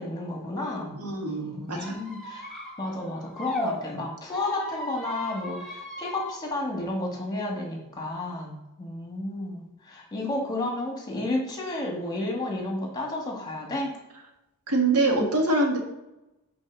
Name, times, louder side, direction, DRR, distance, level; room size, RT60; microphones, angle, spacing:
voice 1, 0.0-1.0 1.2-2.5 2.8-13.9, left 2 dB, 20° left, 0 dB, 1.7 m, -32 dB
voice 2, 1.0-1.9 14.7-15.8, right 2 dB, 90° right, 1 dB, 1.6 m, -24 dB
Squeak, 1.7-3.7 4.2-6.4, left 2 dB, ahead, 2.8 m, -36 dB
6.1 x 4.6 x 6.1 m, 0.96 s
head